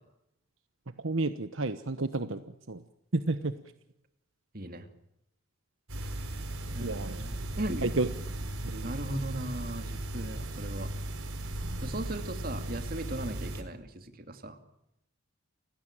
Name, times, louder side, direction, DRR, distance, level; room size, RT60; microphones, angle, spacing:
voice 1, 1.0-2.4 2.7-2.8 3.1-3.5 6.8-7.2 7.8-8.1 8.6-8.9, right 2 dB, 70° right, 11 dB, 1.1 m, -30 dB
voice 2, 4.5-4.9 6.0-6.1 6.7-7.9 8.8-10.9 11.8-14.6, right 1 dB, 45° right, 8 dB, 2.5 m, -38 dB
sound 1, 5.9-13.6, right 1 dB, 85° right, 4.4 m, -37 dB
29.5 x 16.5 x 8.9 m, 0.83 s
head